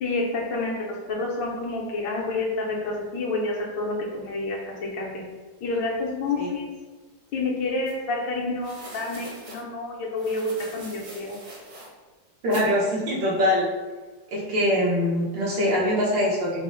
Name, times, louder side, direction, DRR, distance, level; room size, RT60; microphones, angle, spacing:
voice 1, 0.0-5.1 5.6-6.7 7.3-11.4, left 2 dB, 80° left, -3 dB, 1.6 m, -29 dB
sound 1, 7.8-7.9 8.6-9.6 10.2-11.9 12.5-12.7, right 2 dB, 65° right, 1.6 m, -42 dB
voice 2, 12.4-13.7 14.3-16.6, left 1 dB, 80° right, -5 dB, 1.9 m, -23 dB
4.8 x 2.1 x 3.7 m, 1.3 s
omnidirectional pair, 2.0 m